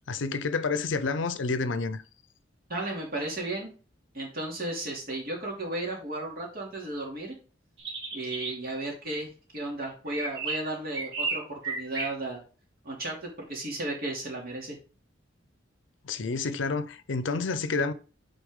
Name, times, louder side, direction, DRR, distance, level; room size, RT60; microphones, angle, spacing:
voice 1, 0.1-2.0 16.0-17.9, left 4 dB, 75° left, 0.6 m, -29 dB
voice 2, 2.7-3.7 4.1-7.3 8.1-12.4 12.8-14.8, right 2 dB, 50° right, 2.6 m, -34 dB
sound 1, 7.8-8.6 9.8-12.1, right 3 dB, 70° right, 1.9 m, -33 dB
8.1 x 4.2 x 3.6 m
head